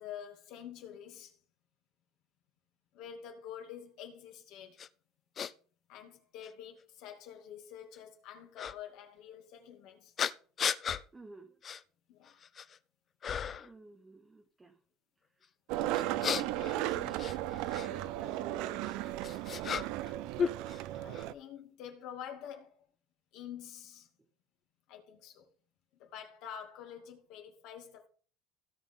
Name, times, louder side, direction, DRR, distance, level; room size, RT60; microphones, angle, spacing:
voice 1, 0.0-1.4 2.9-4.8 5.9-10.1 12.1-12.4 21.0-22.8 23.3-24.1 24.9-25.5 26.0-28.1, left 9 dB, 60° left, 2.4 m, -47 dB
sound 1, 4.8-4.9 5.4-5.5 6.4-6.5 8.6-8.7 10.2-11.0 11.6-11.8 12.3-12.8 13.2-13.7 15.9-17.9 18.8-20.1 20.4-21.2, left 7 dB, 30° left, 0.5 m, -35 dB
voice 2, 11.1-11.6 13.6-14.8 15.3-15.5 15.8-19.4, right 3 dB, 10° right, 0.8 m, -52 dB
Skateboard, 15.7-21.3, right 15 dB, 70° right, 0.5 m, -35 dB
16.5 x 5.9 x 3.7 m
cardioid pair, 150°, 0 cm